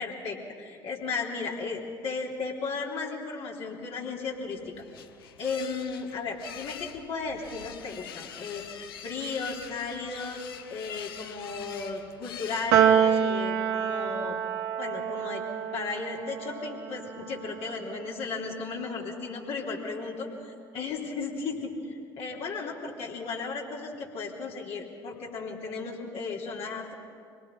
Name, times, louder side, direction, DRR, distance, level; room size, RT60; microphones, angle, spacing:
voice 1, 0.0-4.6 5.4-10.4 10.7-14.4 14.8-15.4 15.7-20.3 20.7-26.9, left 4 dB, 55° left, -2 dB, 3.5 m, -35 dB
sound 1, 4.3-13.2, left 8 dB, 75° left, 0.8 m, -44 dB
Piano, 12.7-19.2, right 8 dB, 60° right, 1.2 m, -28 dB
25.5 x 19.0 x 5.6 m, 2.3 s
figure-of-eight pair, 55°, 12 cm